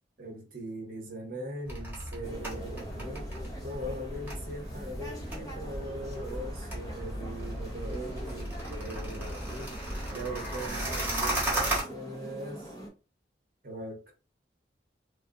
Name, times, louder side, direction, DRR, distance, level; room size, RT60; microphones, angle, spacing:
voice 1, 0.2-3.3 3.6-9.7 10.1-12.7 13.6-14.0, right 1 dB, 55° right, 1.1 m, -40 dB
sound 1, 1.7-11.8, right 1 dB, 10° right, 1.2 m, -35 dB
sound 2, 2.2-12.9, right 1 dB, 20° left, 0.7 m, -44 dB
3.3 x 2.4 x 2.6 m
head